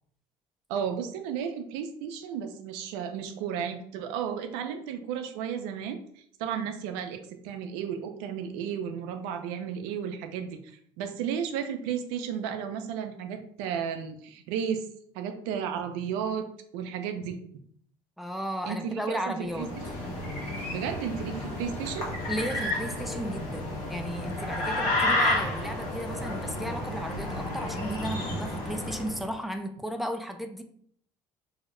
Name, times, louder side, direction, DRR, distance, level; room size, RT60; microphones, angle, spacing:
voice 1, 0.7-14.9 15.1-16.5 16.7-17.4 18.7-19.7 20.7-22.1, right 8 dB, 85° right, 6 dB, 0.4 m, -33 dB
voice 2, 18.2-19.7 22.3-30.6, equal, ahead, 5 dB, 0.3 m, -34 dB
sound 1, 19.5-29.2, left 1 dB, 65° left, 1.1 m, -31 dB
2.7 x 2.1 x 3.7 m, 0.63 s
cardioid pair, 110°, 11 cm